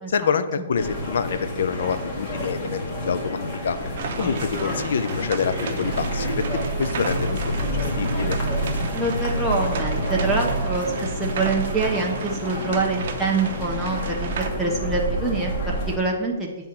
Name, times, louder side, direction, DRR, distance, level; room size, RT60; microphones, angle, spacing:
voice 1, 0.1-3.8 4.2-7.3 7.6-8.4, left 6 dB, 60° left, 11 dB, 0.5 m, -26 dB
sound 1, 0.8-16.0, left 1 dB, 30° left, 1.4 m, -29 dB
sound 2, 4.0-14.5, right 6 dB, 45° right, 0.8 m, -35 dB
sound 3, 5.8-12.0, right 4 dB, 85° right, 0.8 m, -30 dB
voice 2, 8.9-16.6, right 3 dB, ahead, -4 dB, 0.6 m, -25 dB
7.9 x 3.7 x 5.7 m, 1.2 s
hypercardioid pair, 165°, 0 cm